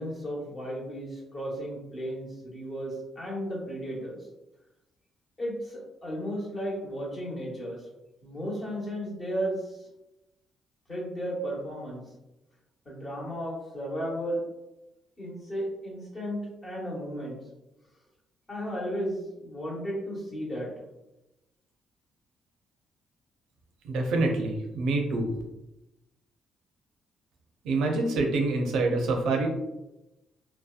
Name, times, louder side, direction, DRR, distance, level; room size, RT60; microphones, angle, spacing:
voice 1, 0.0-4.2 5.4-7.8 8.2-9.8 10.9-12.0 12.8-14.4 15.2-17.4 18.5-20.7, equal, 30° left, -4 dB, 1.1 m, -34 dB
voice 2, 23.8-25.3 27.6-29.5, right 2 dB, 80° right, 2 dB, 0.5 m, -26 dB
2.7 x 2.1 x 2.4 m, 0.95 s
cardioid pair, 90°, 0 cm